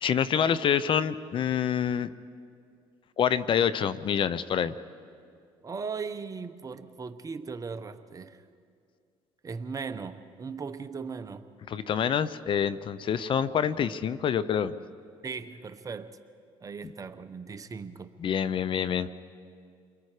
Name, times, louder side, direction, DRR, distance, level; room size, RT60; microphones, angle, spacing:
voice 1, 0.0-2.1 3.2-4.7 11.7-14.7 18.2-19.1, left 8 dB, 50° left, 0.7 m, -26 dB
voice 2, 5.6-8.4 9.4-11.5 15.2-16.2 16.6-18.1, right 5 dB, 30° right, 1.0 m, -38 dB
30.0 x 22.0 x 5.0 m
supercardioid pair, 85°, 11 cm